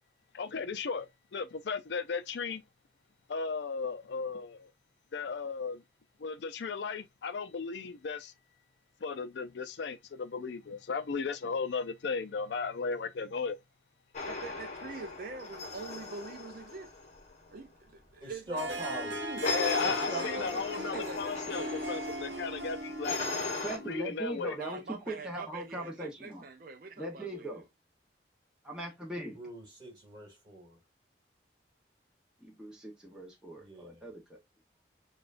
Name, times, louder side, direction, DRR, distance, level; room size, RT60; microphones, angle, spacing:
voice 1, 0.3-2.6 3.3-4.7 5.1-5.8 6.2-8.3 9.0-13.6 19.4-23.2 23.8-24.6, left 5 dB, 65° left, 0.4 m, -35 dB
sound 1, 14.1-17.3 19.4-23.8, left 3 dB, 35° left, 0.9 m, -38 dB
voice 2, 14.2-16.9 17.5-19.4 19.8-21.8 24.6-27.6, right 3 dB, 50° right, 0.4 m, -44 dB
voice 3, 18.2-19.2 19.8-20.3 29.4-30.8 33.6-34.1, right 1 dB, 25° right, 2.1 m, -41 dB
Harp, 18.6-24.0, right 1 dB, 65° right, 0.8 m, -39 dB
voice 4, 23.6-26.4 27.0-27.6 28.6-29.4 32.4-34.4, right 1 dB, 5° right, 0.8 m, -40 dB
6.8 x 2.4 x 2.4 m
head